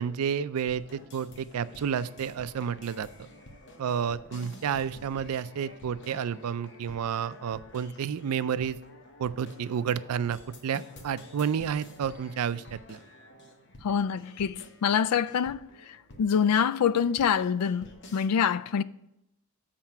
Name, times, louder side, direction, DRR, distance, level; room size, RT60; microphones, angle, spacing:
voice 1, 0.0-3.1 3.8-8.8 9.2-13.0, right 7 dB, 80° right, 0.4 m, -30 dB
sound 1, 0.6-18.3, left 1 dB, 50° left, 1.0 m, -50 dB
voice 2, 13.8-15.6 16.2-18.8, left 7 dB, 90° left, 0.3 m, -25 dB
7.5 x 4.4 x 5.8 m
head